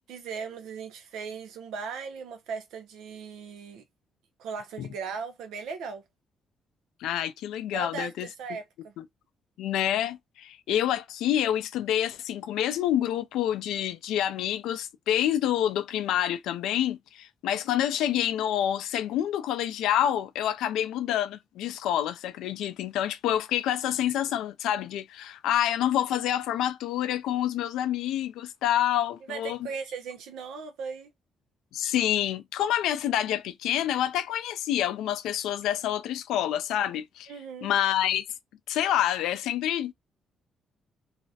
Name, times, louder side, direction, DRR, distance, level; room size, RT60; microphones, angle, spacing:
voice 1, 0.1-3.8 4.4-6.0 7.7-8.9 29.3-31.1 37.3-37.7, right 5 dB, 85° right, 0.6 m, -38 dB
voice 2, 7.0-8.3 9.0-9.1 9.6-29.6 31.7-37.3 37.6-38.3 38.7-39.9, left 11 dB, 90° left, 0.4 m, -27 dB
2.4 x 2.1 x 2.6 m
cardioid pair, 90°, 0 cm